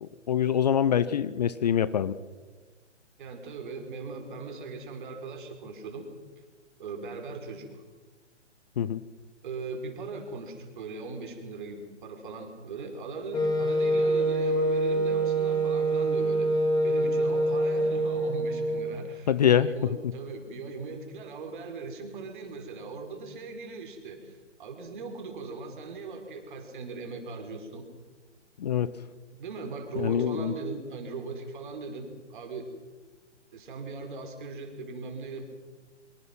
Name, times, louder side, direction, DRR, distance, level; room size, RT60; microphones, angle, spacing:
voice 1, 0.0-2.2 8.8-9.0 19.3-19.7 28.6-28.9 30.0-30.5, left 9 dB, 35° left, 16 dB, 0.7 m, -24 dB
voice 2, 3.2-6.1 6.8-7.8 9.4-16.5 16.8-27.8 29.4-32.7 33.5-35.4, right 4 dB, 40° right, 4 dB, 5.0 m, -39 dB
Wind instrument woodwind instrument, 13.3-19.0, right 1 dB, 10° left, 4.0 m, -25 dB
25.0 x 25.0 x 6.0 m, 1.4 s
figure-of-eight pair, 130°, 36 cm